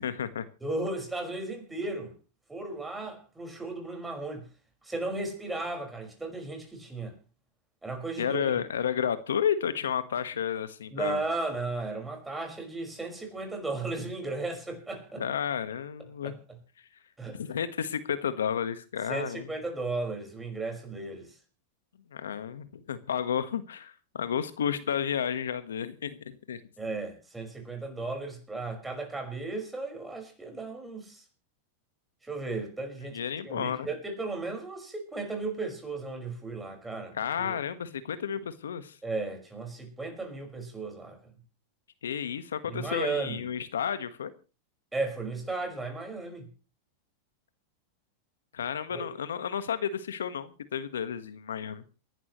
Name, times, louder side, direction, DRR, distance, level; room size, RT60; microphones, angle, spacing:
voice 1, 0.0-0.4 8.2-11.2 15.2-16.3 17.3-19.5 22.1-26.6 33.1-33.9 37.1-38.9 42.0-44.3 48.5-51.8, left 8 dB, 85° left, 1.4 m, -32 dB
voice 2, 0.6-2.1 2.5-4.5 4.8-7.2 7.8-8.5 10.9-15.2 16.2-16.6 17.2-17.4 19.1-21.3 26.8-31.2 32.2-33.2 33.4-37.6 39.0-41.3 42.7-43.4 44.9-46.5 48.9-49.1, right 3 dB, 10° right, 5.4 m, -35 dB
28.0 x 11.0 x 3.2 m
hypercardioid pair, 110°, 0 cm